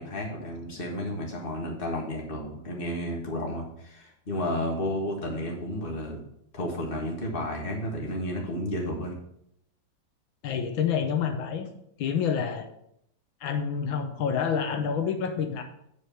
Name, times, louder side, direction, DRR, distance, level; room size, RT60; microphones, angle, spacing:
voice 1, 0.0-6.2 6.5-9.2, left 1 dB, 30° left, 1 dB, 1.7 m, -32 dB
voice 2, 10.4-11.7 12.0-12.7 13.4-15.6, left 7 dB, 85° left, 6 dB, 1.6 m, -28 dB
8.3 x 4.9 x 5.8 m, 0.74 s
omnidirectional pair, 2.1 m